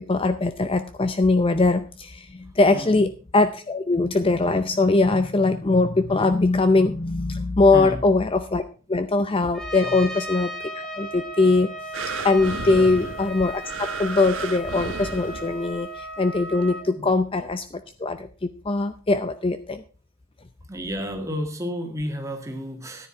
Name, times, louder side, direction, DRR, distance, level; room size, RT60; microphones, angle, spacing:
voice 1, 0.0-8.6 8.9-10.5 10.7-11.7 12.2-19.8, left 3 dB, 25° left, 10 dB, 0.6 m, -21 dB
voice 2, 2.7-3.0 7.7-8.0 9.8-10.1 12.7-13.0 16.9-17.1 20.7-23.1, equal, 15° right, 4 dB, 1.9 m, -32 dB
Trumpet, 9.5-16.9, equal, 5° left, 2.3 m, -36 dB
sound 1, 11.9-15.9 16.5-16.6, right 4 dB, 60° right, 1.1 m, -33 dB
14.0 x 9.8 x 4.5 m, 0.37 s
head